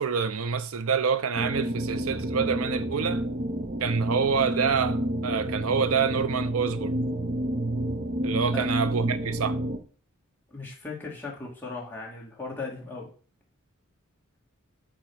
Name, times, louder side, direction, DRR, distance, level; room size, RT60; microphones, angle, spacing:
voice 1, 0.0-3.2 3.8-7.0 8.2-9.6, right 6 dB, 80° right, 0.6 m, -27 dB
sound 1, 1.3-9.8, right 1 dB, 40° right, 0.8 m, -30 dB
voice 2, 10.5-13.1, left 3 dB, 10° left, 2.3 m, -37 dB
8.8 x 3.1 x 6.3 m
head